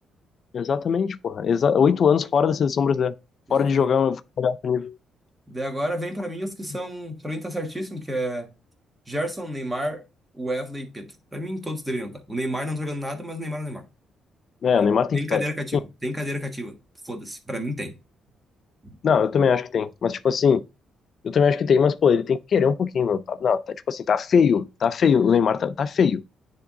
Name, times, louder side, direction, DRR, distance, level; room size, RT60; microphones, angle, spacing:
voice 1, 0.5-3.1 3.5-5.0 14.6-15.4 19.0-20.6 21.2-26.2, left 6 dB, 50° left, 0.4 m, -21 dB
voice 2, 3.5-3.9 5.5-8.5 9.1-10.0 10.3-13.9 15.1-16.8 17.0-17.9 18.8-18.9, equal, 10° right, 1.4 m, -30 dB
10.0 x 3.6 x 3.7 m
cardioid pair, 125°, 0 cm